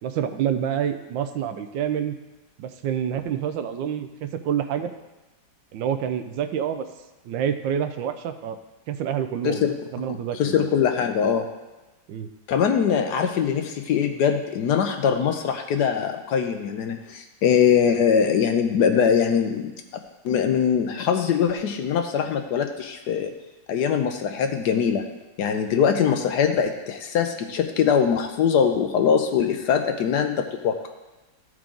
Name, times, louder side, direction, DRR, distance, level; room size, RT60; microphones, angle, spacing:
voice 1, 0.0-2.1 2.6-4.9 5.7-6.9 7.2-8.6 8.9-9.6 9.9-10.6 12.1-12.3, right 9 dB, 80° right, 8 dB, 1.3 m, -27 dB
voice 2, 10.4-11.5 12.5-19.7 20.2-23.3 23.7-25.0 25.4-30.9, left 7 dB, 70° left, 6 dB, 1.1 m, -22 dB
13.5 x 4.7 x 3.8 m, 1.1 s
omnidirectional pair, 2.0 m